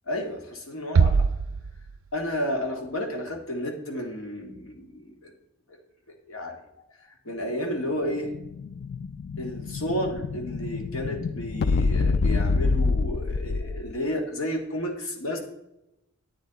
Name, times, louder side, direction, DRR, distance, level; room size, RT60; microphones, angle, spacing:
voice 1, 0.1-1.3 2.1-5.3 6.3-6.6 7.0-8.3 9.4-15.4, equal, 75° left, 2 dB, 1.9 m, -32 dB
sound 1, 0.9-2.6, right 5 dB, 70° right, 0.4 m, -23 dB
Explosion, 7.9-14.0, left 4 dB, 50° left, 0.3 m, -27 dB
10.0 x 8.7 x 4.0 m, 0.90 s
head